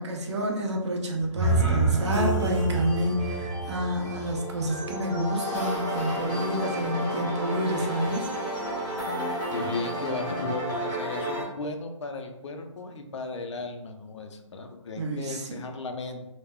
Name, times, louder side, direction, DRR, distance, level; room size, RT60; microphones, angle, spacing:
voice 1, 0.0-8.3 15.0-15.6, right 1 dB, 60° right, 1 dB, 0.6 m, -29 dB
sound 1, 1.2-5.2, right 3 dB, 15° right, 0.4 m, -28 dB
sound 2, 2.0-11.4, equal, 5° left, 0.8 m, -32 dB
voice 2, 9.5-16.3, left 3 dB, 60° left, 5 dB, 0.5 m, -35 dB
2.2 x 2.0 x 3.4 m, 0.94 s
hypercardioid pair, 165°, 17 cm